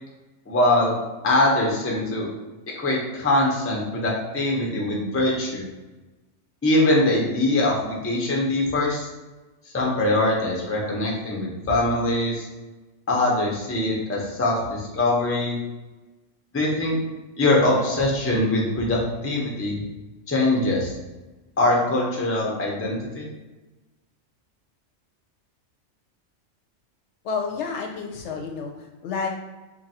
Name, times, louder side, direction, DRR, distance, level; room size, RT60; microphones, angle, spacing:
voice 1, 0.5-1.0 1.2-2.3 2.7-5.6 6.6-9.1 9.7-12.4 13.1-15.6 16.5-17.0 17.4-19.8 20.3-20.9 21.6-23.3, left 1 dB, 15° left, -3 dB, 0.5 m, -22 dB
voice 2, 27.2-29.3, left 5 dB, 75° left, 1 dB, 0.9 m, -30 dB
3.1 x 2.5 x 4.1 m, 1.1 s
omnidirectional pair, 1.3 m